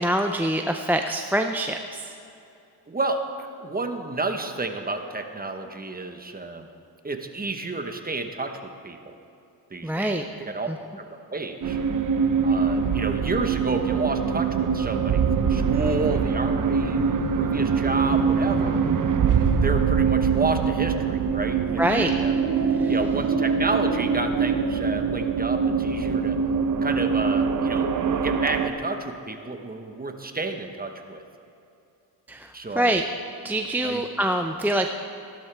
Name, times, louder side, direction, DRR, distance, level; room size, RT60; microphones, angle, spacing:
voice 1, 0.0-2.2 9.8-10.2 10.7-10.8 21.8-22.1 22.7-22.9 32.3-33.0 33.4-34.9, right 1 dB, 5° right, 4 dB, 0.4 m, -25 dB
voice 2, 2.9-6.7 7.0-9.1 9.7-10.7 11.0-11.8 12.4-17.1 17.4-18.8 19.6-22.3 22.9-26.4 26.8-31.2 32.5-32.9 33.8-34.0, right 3 dB, 20° right, 5 dB, 1.1 m, -30 dB
sound 1, 11.6-28.7, right 6 dB, 45° right, 0.8 m, -23 dB
15.5 x 12.0 x 3.4 m, 2.7 s
cardioid pair, 80°, 44 cm